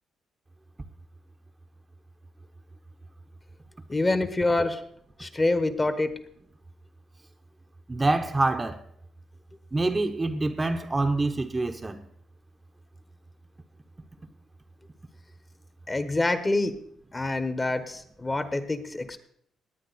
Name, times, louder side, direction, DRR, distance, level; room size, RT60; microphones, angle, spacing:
voice 1, 3.9-4.8 5.2-6.1 15.9-16.8 17.1-19.2, left 2 dB, 20° left, 1.1 m, -26 dB
voice 2, 7.9-8.8 9.7-12.0, right 2 dB, 20° right, 0.8 m, -26 dB
18.5 x 8.8 x 4.1 m
cardioid pair, 90°, 0 cm